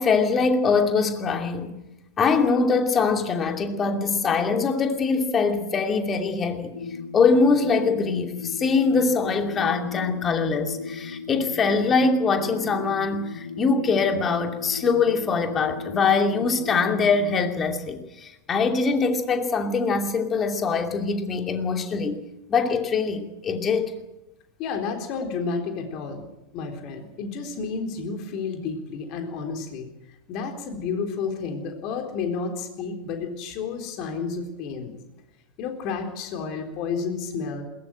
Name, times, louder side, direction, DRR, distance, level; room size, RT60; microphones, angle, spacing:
voice 1, 0.0-1.8 2.2-6.8 7.1-22.2 22.5-23.9, left 4 dB, 25° left, 5 dB, 2.6 m, -23 dB
sound 1, 6.7-17.5, left 5 dB, 75° left, 1.5 m, -36 dB
voice 2, 24.6-26.2 26.5-29.9 30.3-35.0 35.6-37.6, left 5 dB, 40° left, 5 dB, 3.8 m, -31 dB
21.0 x 19.5 x 7.9 m, 0.92 s
figure-of-eight pair, 90°, 0 cm